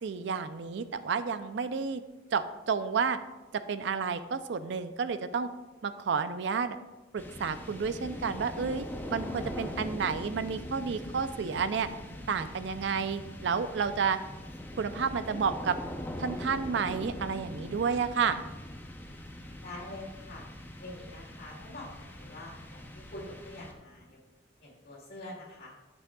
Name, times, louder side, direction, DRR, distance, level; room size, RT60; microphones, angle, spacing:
voice 1, 0.0-2.0 2.3-3.2 3.5-5.5 5.8-6.8 7.1-8.8 9.1-11.9 12.3-14.2 14.8-15.8 16.2-18.4, right 6 dB, 70° right, 11 dB, 0.4 m, -31 dB
sound 1, 7.2-24.1, left 1 dB, 10° left, 0.6 m, -42 dB
voice 2, 19.2-20.5 20.8-24.2 24.6-25.7, left 1 dB, 55° left, -4 dB, 2.3 m, -45 dB
10.0 x 6.1 x 2.3 m, 1.1 s
head